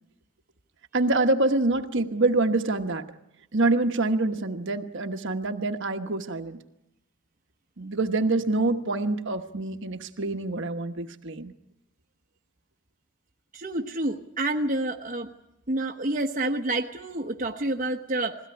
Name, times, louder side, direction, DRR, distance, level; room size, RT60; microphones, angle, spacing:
voice 1, 0.9-3.0 3.5-6.6 7.8-11.5, right 2 dB, 55° right, 6 dB, 1.2 m, -26 dB
voice 2, 13.5-15.3 15.7-18.4, right 2 dB, 35° right, 2 dB, 1.1 m, -28 dB
21.5 x 17.0 x 9.8 m, 0.88 s
head